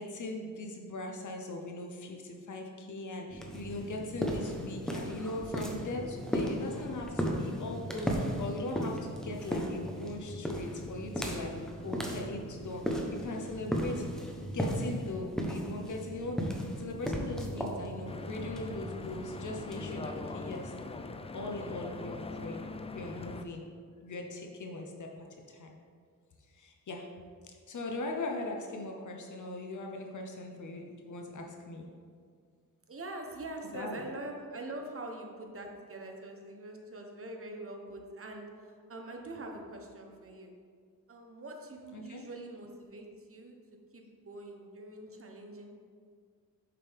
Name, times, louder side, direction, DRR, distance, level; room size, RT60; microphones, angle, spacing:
voice 1, 0.0-11.5 11.8-14.1 14.5-20.7 21.3-22.7 22.9-23.6 24.0-25.7 26.5-27.1 27.7-31.9 33.7-34.0 41.9-42.2, left 2 dB, 55° left, 1 dB, 0.8 m, -40 dB
sound 1, 3.3-20.8, equal, ahead, 0.9 m, -36 dB
Stream / Boat Water vehicle, 18.1-23.4, left 3 dB, 20° left, 0.3 m, -42 dB
voice 2, 32.9-40.5 41.1-43.5 43.9-45.8, right 2 dB, 40° right, 2 dB, 1.0 m, -44 dB
6.8 x 5.3 x 3.5 m, 2.1 s
cardioid pair, 80°, 35 cm